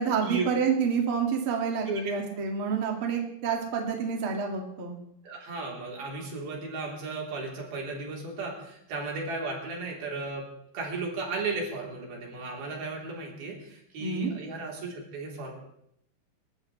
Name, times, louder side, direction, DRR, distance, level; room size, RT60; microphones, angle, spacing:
voice 1, 0.0-4.9 14.0-14.3, right 6 dB, 40° right, 1 dB, 2.6 m, -28 dB
voice 2, 5.2-10.5 10.7-15.5, right 3 dB, 75° right, -2 dB, 5.5 m, -35 dB
28.5 x 14.0 x 3.3 m, 0.74 s
omnidirectional pair, 4.4 m